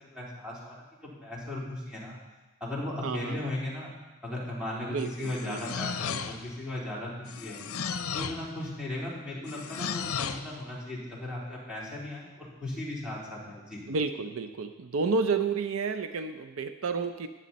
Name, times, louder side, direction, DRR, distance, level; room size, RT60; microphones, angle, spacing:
voice 1, 0.0-2.2 2.6-3.9 4.2-7.6 8.1-13.8, left 1 dB, 5° right, -7 dB, 3.6 m, -37 dB
voice 2, 3.0-3.5 4.9-5.6 13.9-17.3, right 4 dB, 70° right, 8 dB, 0.5 m, -30 dB
sound 1, 5.0-6.6 7.3-8.5 9.5-10.5, left 6 dB, 80° left, 0.7 m, -35 dB
15.0 x 10.0 x 4.2 m, 1.2 s
head